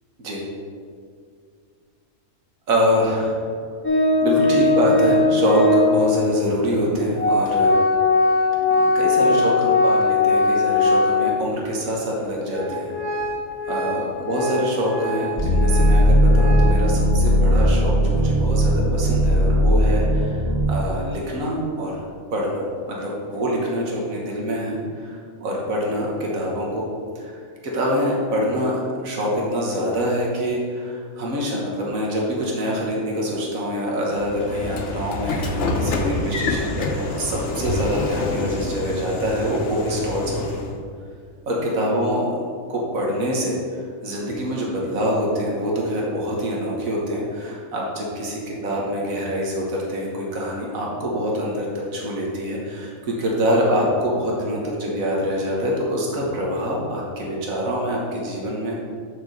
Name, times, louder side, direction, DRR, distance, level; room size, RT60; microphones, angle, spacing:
voice 1, 2.7-3.4 4.2-7.7 8.8-12.9 13.7-20.4 20.7-22.0 22.3-26.9 27.1-40.6 41.5-42.2 42.7-58.8, equal, 85° right, -3 dB, 1.7 m, -25 dB
Organ, 3.8-6.1 6.9-7.0 7.2-11.6 11.9-12.0 12.5-16.9, left 3 dB, 10° left, 0.8 m, -20 dB
sound 1, 15.4-20.6, equal, 50° right, 2.0 m, -17 dB
Train / Sliding door, 34.2-40.8, left 2 dB, 60° left, 1.0 m, -27 dB
6.6 x 4.5 x 6.6 m, 2.2 s
omnidirectional pair, 1.4 m